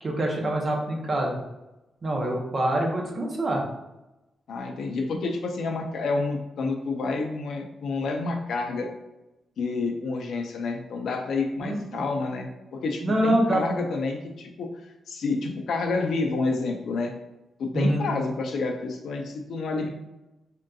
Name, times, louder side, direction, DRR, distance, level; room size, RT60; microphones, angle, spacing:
voice 1, 0.0-1.3 2.0-3.6 11.6-12.0 13.0-13.6 17.7-18.1, right 1 dB, 30° right, 0 dB, 0.6 m, -25 dB
voice 2, 4.5-8.9 9.6-14.7 15.1-17.1 17.6-19.9, left 3 dB, 65° left, 3 dB, 0.4 m, -29 dB
3.6 x 2.6 x 2.3 m, 0.98 s
wide cardioid pair, 170°, 0 cm